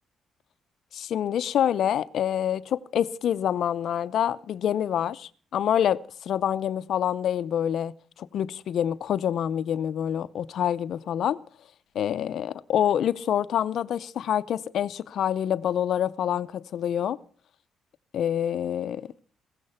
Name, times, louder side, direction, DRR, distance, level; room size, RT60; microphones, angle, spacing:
voice 1, 0.9-7.9 8.2-11.4 11.9-17.2 18.1-19.1, left 10 dB, 70° left, 0.6 m, -26 dB
16.0 x 15.0 x 5.7 m
cardioid pair, 90°, 0 cm